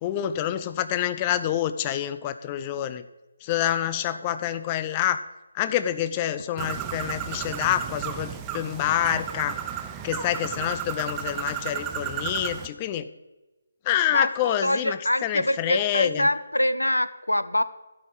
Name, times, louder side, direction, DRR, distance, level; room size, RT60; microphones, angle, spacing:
voice 1, 0.0-3.0 3.4-5.2 5.5-9.6 10.0-13.1 13.9-16.3, left 11 dB, 20° left, 12 dB, 0.4 m, -27 dB
Bird, 6.6-12.7, right 9 dB, 15° right, 0.7 m, -33 dB
voice 2, 14.1-17.6, left 1 dB, 85° left, 15 dB, 0.7 m, -25 dB
12.5 x 5.3 x 7.8 m, 1.1 s
figure-of-eight pair, 145°, 0 cm